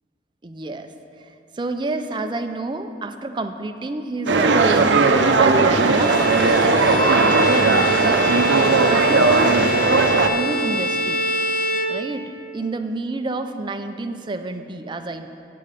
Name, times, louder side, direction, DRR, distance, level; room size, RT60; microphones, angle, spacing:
voice 1, 0.4-0.9 1.2-1.3 1.5-5.1 5.4-6.2 6.6-8.2 8.8-11.2 11.9-15.3, right 2 dB, 25° right, 7 dB, 0.4 m, -29 dB
sound 1, 4.3-10.3, right 3 dB, 75° right, 0.6 m, -17 dB
Bowed string instrument, 5.7-12.5, equal, 50° left, 0.6 m, -25 dB
8.6 x 8.5 x 5.1 m, 2.6 s
head